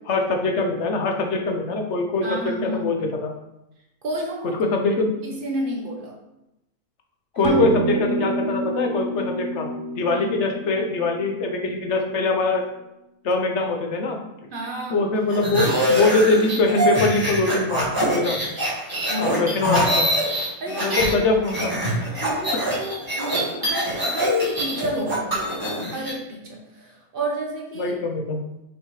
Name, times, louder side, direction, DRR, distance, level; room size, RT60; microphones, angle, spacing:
voice 1, 0.1-3.3 4.4-5.1 7.3-9.7 9.9-12.6 13.2-14.2 14.9-17.9 18.1-18.4 19.2-20.1 20.8-21.7 22.0-22.1 27.8-28.4, left 3 dB, 55° left, 3 dB, 1.1 m, -23 dB
voice 2, 2.2-2.9 4.0-4.6 5.2-6.2 7.3-7.6 10.1-10.4 14.5-15.0 19.1-19.4 20.6-21.0 22.1-27.9, right 1 dB, 40° right, 0 dB, 1.2 m, -30 dB
sound 1, 7.4-12.1, right 3 dB, 60° right, 1.0 m, -28 dB
sound 2, 15.3-21.1 21.4-26.1, equal, 15° right, 1.9 m, -24 dB
5.9 x 5.6 x 3.2 m, 0.90 s
omnidirectional pair, 1.6 m